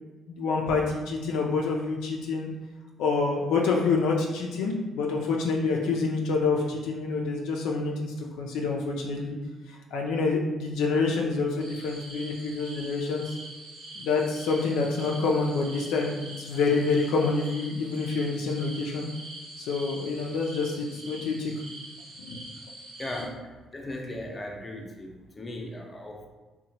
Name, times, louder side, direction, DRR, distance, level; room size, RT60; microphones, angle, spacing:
voice 1, 0.3-2.5 3.0-9.4 9.7-13.3 14.0-19.1 19.6-21.6 22.2-22.4, left 4 dB, 80° left, -1 dB, 0.3 m, -27 dB
sound 1, 11.6-23.2, right 1 dB, 85° right, 0.6 m, -44 dB
voice 2, 23.0-23.4 23.7-26.3, left 1 dB, 25° left, 1 dB, 0.5 m, -37 dB
2.8 x 2.1 x 2.7 m, 1.2 s
hypercardioid pair, 55°, 0 cm